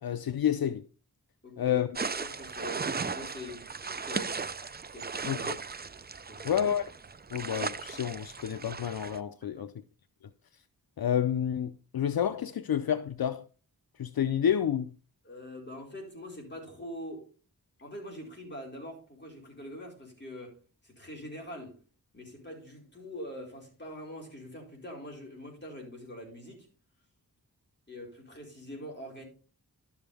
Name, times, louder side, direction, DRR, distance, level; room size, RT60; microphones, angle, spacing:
voice 1, 0.0-0.8 1.6-1.9 5.2-5.6 6.4-6.9 7.3-9.7 11.0-13.5 14.0-15.0, left 9 dB, 75° left, 0.6 m, -29 dB
voice 2, 1.4-1.8 2.2-3.7 4.0-4.5 4.9-5.5 6.3-6.6 9.5-9.6 15.2-17.2 17.8-20.6 20.8-21.8 22.1-26.7 27.9-29.2, left 1 dB, 30° left, 4.5 m, -44 dB
sound 1, 2.0-9.2, right 5 dB, 25° right, 0.5 m, -37 dB
12.0 x 7.3 x 3.4 m
wide cardioid pair, 80°, 36 cm